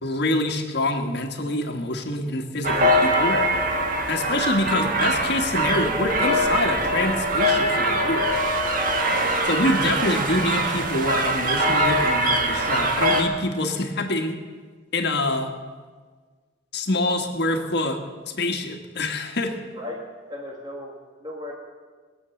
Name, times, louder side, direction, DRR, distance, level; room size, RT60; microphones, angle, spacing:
voice 1, 0.0-3.4 4.1-8.3 9.4-14.4 14.9-15.5 16.7-18.0 18.3-19.5, left 2 dB, 65° left, 4 dB, 1.5 m, -26 dB
sound 1, 2.6-13.2, right 1 dB, 50° right, 1.6 m, -22 dB
voice 2, 9.1-9.4 19.7-20.0 20.3-21.6, left 1 dB, 25° right, 0 dB, 1.3 m, -37 dB
20.5 x 7.9 x 7.0 m, 1.5 s
head